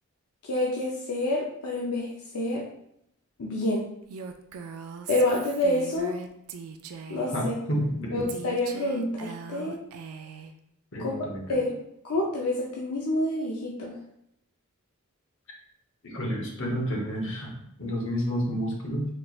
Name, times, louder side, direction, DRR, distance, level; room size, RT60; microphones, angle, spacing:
voice 1, 0.4-2.6 3.4-3.9 5.1-6.2 7.1-7.5 8.1-9.8 11.0-11.1 11.5-11.7 12.0-13.9, left 1 dB, 80° left, -3 dB, 0.5 m, -27 dB
Female speech woman speaking, 4.1-7.4 8.3-10.5, right 5 dB, 75° right, 0.4 m, -40 dB
voice 2, 7.3-8.3 10.9-11.4 15.5-15.6 16.0-19.1, equal, 60° left, -1 dB, 1.0 m, -30 dB
4.2 x 3.0 x 2.3 m, 0.77 s
head